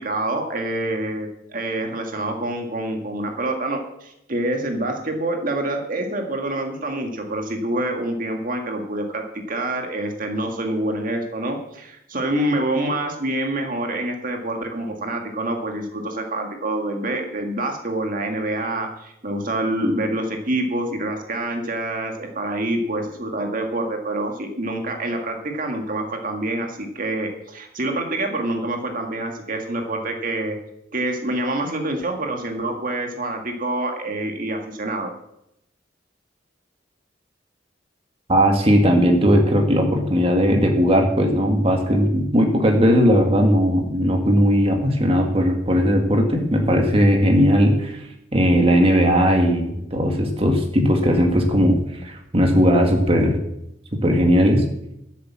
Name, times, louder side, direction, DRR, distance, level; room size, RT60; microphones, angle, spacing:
voice 1, 0.0-30.6 30.9-35.1, right 1 dB, 45° right, 3 dB, 1.8 m, -26 dB
voice 2, 38.3-48.0 48.3-53.4 54.0-54.7, equal, 30° right, 2 dB, 1.8 m, -18 dB
13.0 x 7.7 x 7.4 m, 0.82 s
head